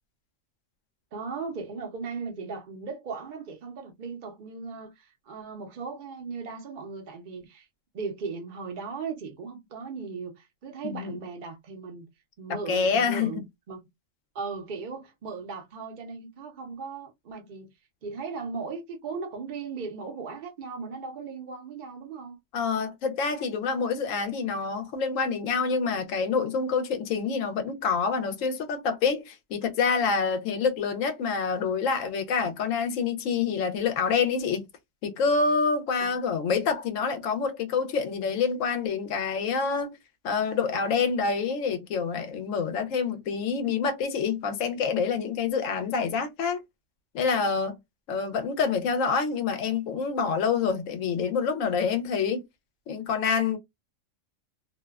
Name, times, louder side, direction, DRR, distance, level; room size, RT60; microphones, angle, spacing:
voice 1, 1.1-7.7 7.9-12.1 12.4-13.4 13.7-13.8 14.3-17.7 18.0-22.4 36.0-36.2, right 5 dB, 60° right, 0.5 m, -37 dB
voice 2, 12.7-13.4 22.5-34.7 35.0-40.0 40.2-46.6 47.1-47.8 48.1-52.4 52.9-53.6, left 5 dB, 80° left, 1.0 m, -27 dB
2.6 x 2.1 x 2.2 m
omnidirectional pair, 1.3 m